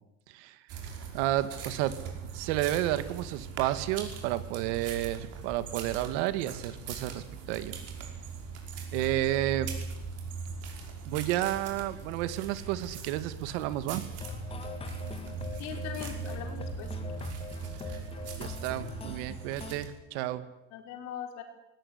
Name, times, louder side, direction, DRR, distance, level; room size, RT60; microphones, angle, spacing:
sound 1, 0.7-19.9, right 5 dB, 45° right, 5.4 m, -40 dB
voice 1, 1.1-2.0 2.2-7.8 8.9-9.7 11.1-14.0 17.8-17.9 18.4-20.5, right 14 dB, 90° right, 12 dB, 2.1 m, -31 dB
sound 2, 14.2-19.7, left 5 dB, 15° left, 2.0 m, -42 dB
voice 2, 15.6-16.9 20.7-21.4, left 9 dB, 55° left, 4 dB, 5.1 m, -40 dB
20.0 x 19.5 x 10.0 m, 0.92 s
cardioid pair, 175°, 34 cm